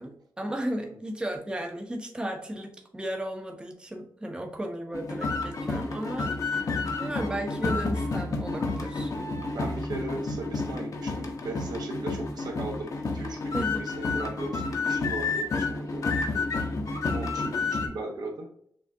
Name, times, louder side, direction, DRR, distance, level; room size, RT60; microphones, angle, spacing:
voice 1, 0.0-9.1 13.5-13.9 16.7-17.0, right 1 dB, 15° right, 2 dB, 0.8 m, -35 dB
sound 1, 4.9-17.9, left 3 dB, 55° left, 0.9 m, -30 dB
voice 2, 9.5-16.6 17.1-18.5, right 2 dB, 70° right, 1 dB, 1.1 m, -38 dB
6.7 x 2.5 x 2.6 m, 0.67 s
cardioid pair, 95°, 7 cm